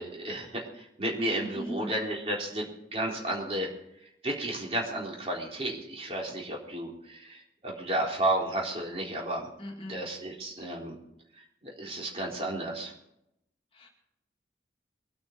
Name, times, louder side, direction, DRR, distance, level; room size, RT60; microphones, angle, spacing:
voice 1, 0.0-3.7 4.2-7.4 7.6-9.5 9.9-11.0 11.6-12.9, right 1 dB, 35° right, -1 dB, 3.9 m, -32 dB
voice 2, 1.5-1.9 9.6-10.0 13.8-13.9, equal, 30° left, 1 dB, 2.3 m, -39 dB
23.5 x 9.5 x 4.6 m, 0.81 s
head